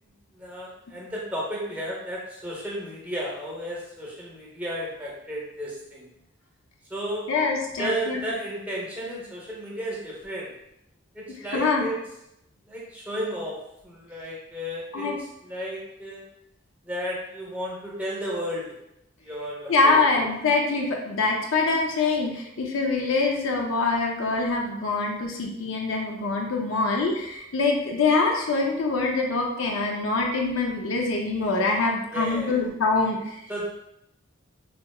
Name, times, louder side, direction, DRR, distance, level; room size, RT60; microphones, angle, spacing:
voice 1, 0.3-6.1 6.9-7.2 7.8-10.5 11.1-12.0 12.7-13.6 13.8-15.1 15.4-16.2 16.8-18.7 19.2-20.0 32.1-32.6 33.5-33.7, equal, 10° right, -5 dB, 0.8 m, -33 dB
voice 2, 7.3-8.2 11.5-11.9 14.9-15.2 19.7-33.4, left 3 dB, 75° left, 0 dB, 0.5 m, -24 dB
3.2 x 2.9 x 2.3 m, 0.82 s
head